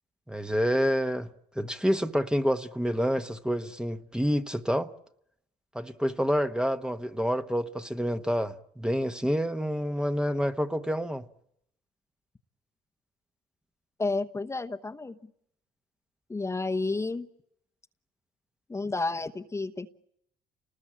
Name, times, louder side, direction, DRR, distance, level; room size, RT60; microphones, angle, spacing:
voice 1, 0.3-1.3 1.6-4.9 5.7-11.2, equal, 5° right, 1.1 m, -28 dB
voice 2, 14.0-15.2 16.3-17.3 18.7-19.9, left 3 dB, 15° left, 1.0 m, -31 dB
30.0 x 20.0 x 8.8 m
cardioid pair, 110°, 17 cm